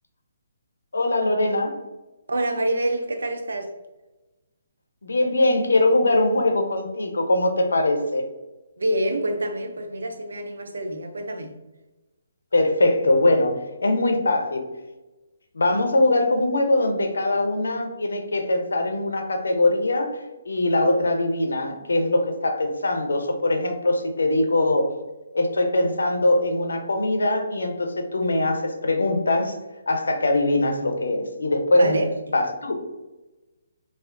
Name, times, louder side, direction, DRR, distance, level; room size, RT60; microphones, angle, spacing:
voice 1, 0.9-1.8 5.0-8.2 12.5-14.6 15.5-20.1 20.5-24.9 25.3-29.5 29.9-31.9 32.3-32.8, left 2 dB, 85° left, 0.5 m, -22 dB
voice 2, 2.3-3.7 8.8-11.6 31.8-32.1, right 1 dB, 85° right, 0.4 m, -26 dB
3.4 x 2.4 x 2.4 m
hypercardioid pair, 150°, 0 cm